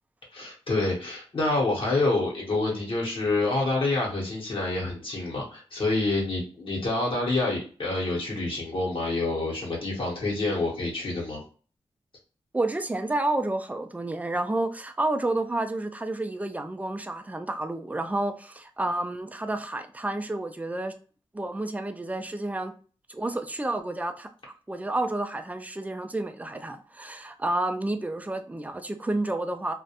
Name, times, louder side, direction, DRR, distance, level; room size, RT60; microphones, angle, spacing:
voice 1, 0.3-11.4, left 2 dB, 60° left, 0.9 m, -27 dB
voice 2, 12.5-20.9 21.3-22.7 23.1-24.3 24.7-29.7, right 2 dB, 15° right, 0.3 m, -30 dB
2.3 x 2.1 x 2.8 m
cardioid pair, 60°, 10 cm